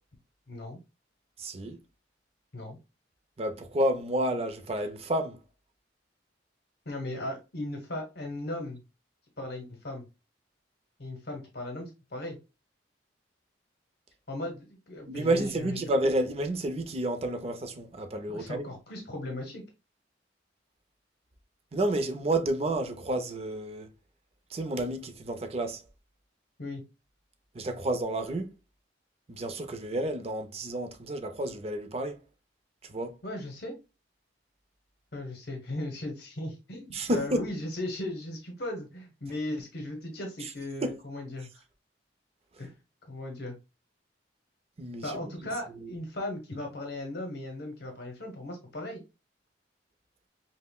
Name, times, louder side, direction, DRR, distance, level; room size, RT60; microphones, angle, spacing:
voice 1, 0.5-0.8 2.5-2.8 6.9-8.8 9.4-10.0 11.0-12.4 14.3-15.8 18.3-19.6 26.6-26.8 33.2-33.8 35.1-41.6 42.6-42.8 43.1-43.6 45.0-49.0, left 1 dB, 55° left, 0.8 m, -37 dB
voice 2, 1.4-1.8 3.4-5.4 15.1-18.7 21.7-23.9 24.5-25.8 27.5-28.5 29.3-32.2 32.8-33.2 36.9-37.4 40.4-40.5 40.8-41.0 44.8-45.2 45.7-45.9, right 1 dB, 35° right, 0.5 m, -30 dB
5.5 x 2.1 x 2.2 m
head